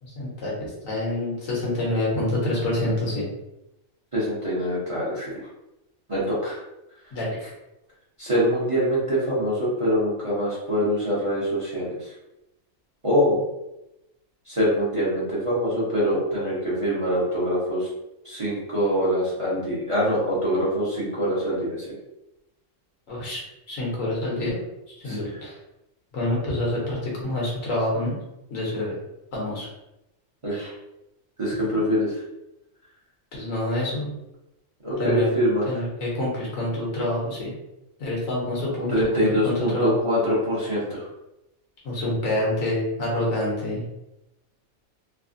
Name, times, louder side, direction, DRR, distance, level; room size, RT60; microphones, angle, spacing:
voice 1, 0.0-3.2 7.1-7.4 23.1-23.4 23.7-24.6 25.0-25.5 26.1-28.1 28.5-28.9 29.3-29.7 33.3-34.1 35.0-35.3 35.7-37.5 38.0-39.9 41.8-43.8, left 1 dB, 75° left, -5 dB, 1.4 m, -27 dB
voice 2, 4.1-5.3 6.1-6.6 8.2-12.1 13.0-13.4 14.5-17.9 18.2-21.9 25.0-25.3 30.4-30.7 31.4-32.2 34.8-35.8 38.9-41.1, equal, 30° right, -8 dB, 0.7 m, -24 dB
3.3 x 2.0 x 2.5 m, 0.91 s
omnidirectional pair, 1.4 m